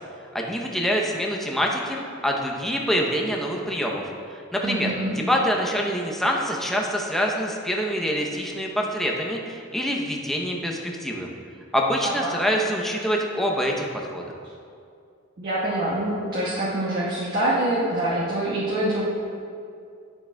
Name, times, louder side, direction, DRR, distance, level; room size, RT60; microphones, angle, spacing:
voice 1, 0.3-4.0 4.5-11.3 11.7-14.2, equal, ahead, -1 dB, 0.7 m, -25 dB
voice 2, 4.6-5.2 12.0-12.3 15.4-19.0, right 1 dB, 50° right, -9 dB, 1.3 m, -25 dB
11.0 x 7.0 x 2.3 m, 2.4 s
head